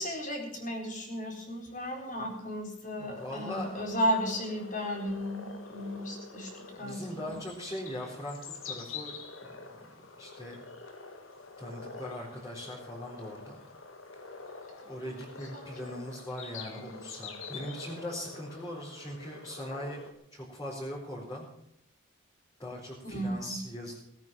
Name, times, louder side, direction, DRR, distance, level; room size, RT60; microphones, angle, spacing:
voice 1, 0.0-7.4 15.5-16.1 16.7-16.9 23.0-23.6, equal, 40° left, 1 dB, 4.4 m, -34 dB
voice 2, 3.0-3.7 6.7-9.9 10.2-10.6 11.6-13.6 14.8-20.0 20.3-21.4 22.6-24.0, left 1 dB, 15° left, -7 dB, 4.3 m, -40 dB
sound 1, 3.1-20.1, left 4 dB, 80° left, 2.2 m, -46 dB
18.0 x 9.4 x 7.6 m, 0.74 s
head